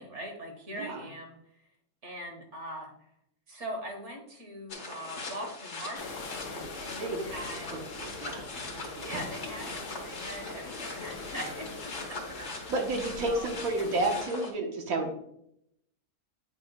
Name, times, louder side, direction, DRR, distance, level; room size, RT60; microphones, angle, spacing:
voice 1, 0.0-1.4 2.0-2.9 3.5-6.2 6.8-7.8 9.0-12.7 13.3-13.5, equal, 50° right, 2 dB, 1.7 m, -41 dB
voice 2, 0.7-1.1 7.0-7.2 7.5-9.1 12.7-15.1, right 2 dB, 65° right, 2 dB, 1.5 m, -32 dB
sound 1, 4.7-14.5, left 3 dB, 50° left, 1.3 m, -41 dB
sound 2, 6.0-14.2, left 3 dB, 80° left, 1.6 m, -43 dB
8.2 x 5.3 x 2.3 m, 0.73 s
omnidirectional pair, 1.7 m